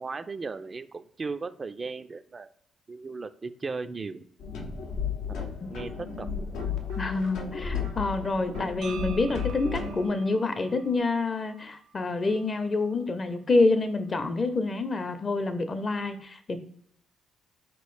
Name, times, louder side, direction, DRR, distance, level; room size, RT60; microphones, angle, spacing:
voice 1, 0.0-2.5 2.9-4.2 5.3-5.9 6.2-6.3, right 4 dB, 35° right, 10 dB, 0.3 m, -36 dB
sound 1, 4.4-10.1, left 6 dB, 85° left, 0.7 m, -34 dB
sound 2, 5.9-11.0, right 2 dB, 90° right, 1.4 m, -50 dB
voice 2, 7.0-16.6, left 3 dB, 40° left, 10 dB, 0.6 m, -27 dB
sound 3, 8.8-12.9, right 7 dB, 70° right, 0.7 m, -48 dB
4.1 x 2.9 x 3.1 m, 0.64 s
supercardioid pair, 65°, 0 cm